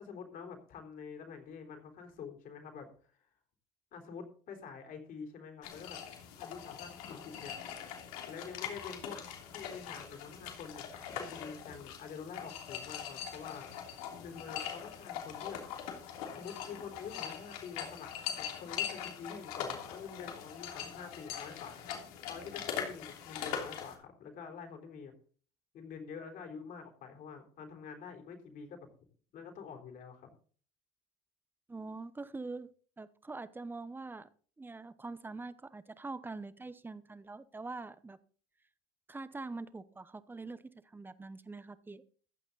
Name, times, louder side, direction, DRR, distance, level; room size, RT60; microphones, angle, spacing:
voice 1, 0.0-2.9 3.9-6.0 6.4-7.5 8.3-9.2 9.5-10.8 11.2-13.7 14.2-15.6 16.3-18.1 18.4-21.8 22.3-25.1 25.7-28.9 29.3-30.3, left 6 dB, 50° left, 4 dB, 3.9 m, -47 dB
sound 1, 5.6-24.0, left 8 dB, 85° left, 3.1 m, -42 dB
voice 2, 31.7-32.7 33.0-34.3 34.6-38.2 39.1-42.0, right 3 dB, 10° right, 15 dB, 0.8 m, -44 dB
15.0 x 9.0 x 4.0 m, 0.43 s
supercardioid pair, 110°, 18 cm